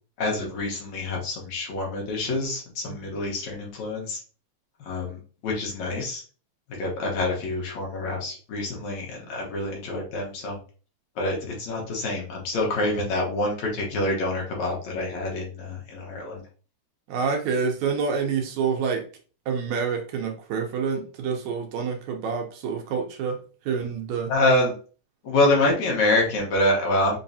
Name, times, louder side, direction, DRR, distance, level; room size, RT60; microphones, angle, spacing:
voice 1, 0.2-4.2 4.8-6.2 6.8-10.6 11.2-16.4 24.3-24.7 25.2-27.2, left 2 dB, 70° left, -1 dB, 2.6 m, -26 dB
voice 2, 17.1-19.0 19.5-23.4 23.7-24.3, right 5 dB, 75° right, 3 dB, 2.1 m, -27 dB
5.8 x 3.1 x 2.7 m, 0.38 s
omnidirectional pair, 3.4 m